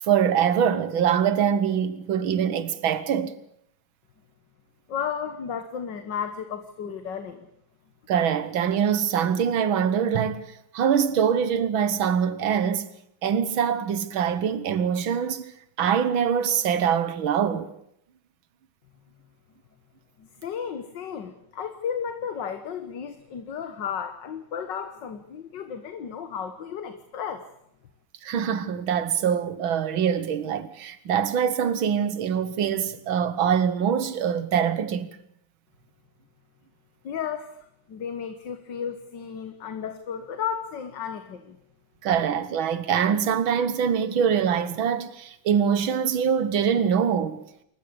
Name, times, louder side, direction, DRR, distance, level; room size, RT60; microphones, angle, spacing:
voice 1, 0.0-3.3 8.1-12.9 13.2-15.4 15.8-17.7 28.2-35.1 42.0-47.4, right 8 dB, 70° right, 2.1 m, -24 dB
voice 2, 4.9-7.5 20.2-27.5 37.0-37.6 37.9-41.6, left 7 dB, 60° left, 1.9 m, -33 dB
27.5 x 15.0 x 8.7 m
omnidirectional pair, 2.3 m